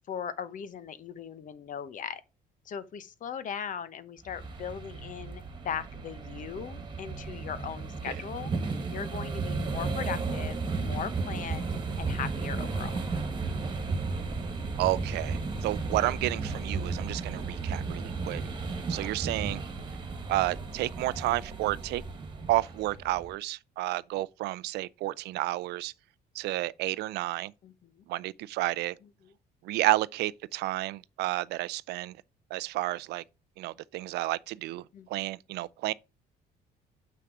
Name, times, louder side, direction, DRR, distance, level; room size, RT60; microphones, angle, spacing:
voice 1, 0.1-2.2 2.6-8.5 8.9-11.7 12.0-12.9 18.3-18.9 27.6-28.0 29.2-29.3 34.9-35.1, left 8 dB, 50° left, 1.0 m, -39 dB
sound 1, 4.3-23.3, right 4 dB, 30° right, 1.9 m, -34 dB
voice 2, 14.8-18.4 18.9-19.6 20.3-22.0 22.5-25.9 26.3-27.5 28.1-28.9 29.6-32.1 32.5-33.2 33.6-34.8 35.1-35.9, right 17 dB, 80° right, 0.4 m, -31 dB
6.8 x 5.9 x 4.8 m
cardioid pair, 110°, 17 cm